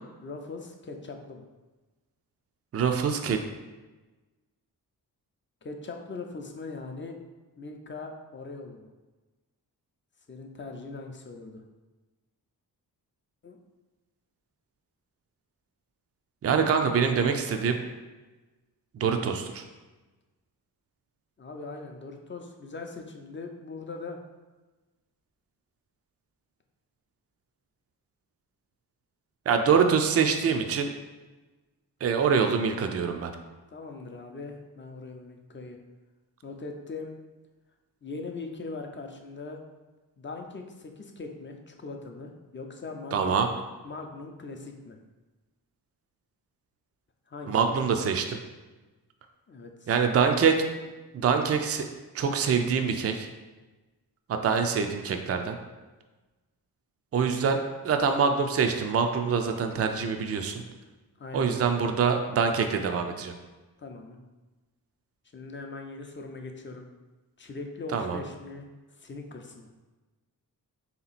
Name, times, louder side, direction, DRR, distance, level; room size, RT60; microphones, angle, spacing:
voice 1, 0.2-1.4 5.6-7.2 7.6-8.9 10.3-11.6 13.4-13.6 21.4-24.2 33.7-35.8 36.4-37.1 38.0-39.6 40.2-43.4 43.8-45.0 47.3-48.2 49.5-50.0 54.3-54.6 61.2-61.5 63.8-64.2 65.3-66.9 67.4-68.7 69.0-69.7, left 3 dB, 30° left, 3 dB, 0.5 m, -40 dB
voice 2, 2.7-3.4 16.4-17.8 18.9-19.6 29.5-30.9 32.0-33.3 43.1-43.5 47.5-48.2 49.9-50.6 51.1-51.8 52.1-53.3 54.3-55.6 57.1-60.6 61.3-63.3 67.9-68.2, right 6 dB, 40° right, 5 dB, 0.4 m, -25 dB
3.6 x 2.9 x 4.1 m, 1.2 s
cardioid pair, 80°, 38 cm